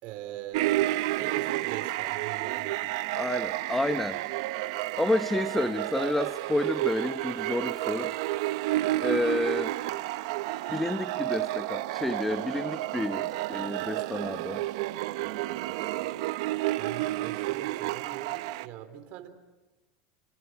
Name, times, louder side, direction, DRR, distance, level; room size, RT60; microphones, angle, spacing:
voice 1, 0.0-2.8 13.3-13.7 15.2-16.2 16.8-19.3, right 11 dB, 55° right, 8 dB, 3.7 m, -42 dB
sound 1, 0.5-18.7, right 17 dB, 70° right, 0.9 m, -31 dB
voice 2, 3.2-4.2 5.0-8.1 9.0-9.7 10.7-14.6, left 1 dB, 5° left, 12 dB, 0.8 m, -30 dB
27.0 x 27.0 x 6.3 m, 1.1 s
supercardioid pair, 115°, 3 cm